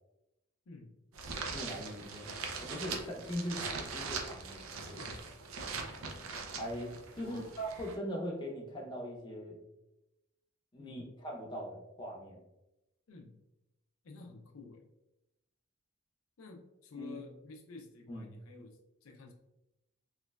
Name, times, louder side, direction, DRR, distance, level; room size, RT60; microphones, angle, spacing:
sound 1, 1.1-8.0, right 4 dB, 75° right, 0.5 m, -41 dB
voice 1, 1.5-2.2 2.6-5.0 6.6-9.6 10.7-12.4 16.9-17.2 18.1-18.3, equal, 20° left, -1 dB, 0.6 m, -41 dB
voice 2, 2.2-2.6 4.9-5.2 7.2-7.6 10.8-11.1 13.1-13.4 14.0-14.9 16.4-19.3, left 4 dB, 75° left, 3 dB, 0.5 m, -51 dB
3.1 x 3.0 x 2.3 m, 0.91 s
head